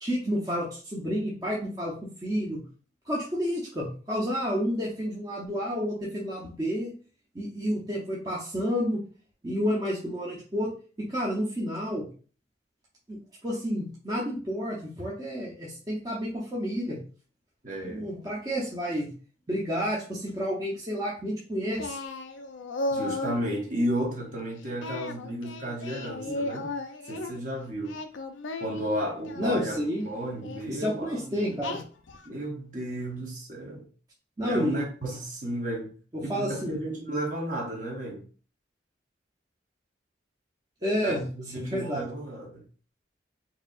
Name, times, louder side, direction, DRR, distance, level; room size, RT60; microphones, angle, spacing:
voice 1, 0.0-1.9 2.2-2.6 3.1-6.9 7.3-9.0 9.4-10.7 11.0-12.1 13.1-13.2 13.4-17.0 17.8-19.1 19.5-22.0 29.4-30.0 30.7-31.8 34.4-34.8 36.1-36.8 40.8-41.3 41.6-42.1, equal, 20° right, -6 dB, 0.8 m, -30 dB
voice 2, 17.6-18.1 22.9-26.7 27.1-28.0 28.6-31.6 32.2-33.8 34.4-35.9 36.2-38.2 41.0-42.6, right 1 dB, 45° right, -1 dB, 1.2 m, -33 dB
Singing, 21.8-23.4 24.8-27.3 27.8-29.6 30.4-30.7 31.6-32.3, left 2 dB, 80° left, 0.5 m, -35 dB
4.7 x 2.8 x 2.5 m, 0.39 s
head